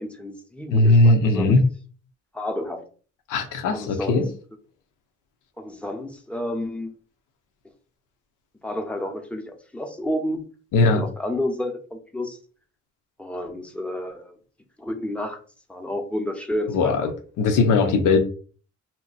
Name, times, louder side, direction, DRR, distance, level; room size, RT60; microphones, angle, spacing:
voice 1, 0.0-1.6 2.3-2.8 3.7-4.3 5.6-7.0 8.6-10.4 10.8-12.4 13.2-14.4 14.8-15.4 15.7-17.1, left 1 dB, 5° left, 3 dB, 0.7 m, -30 dB
voice 2, 0.7-1.6 3.3-4.3 10.7-11.0 16.7-17.1 17.4-18.2, left 2 dB, 85° left, 6 dB, 0.8 m, -18 dB
2.8 x 2.1 x 4.0 m, 0.41 s
cardioid pair, 90°, 30 cm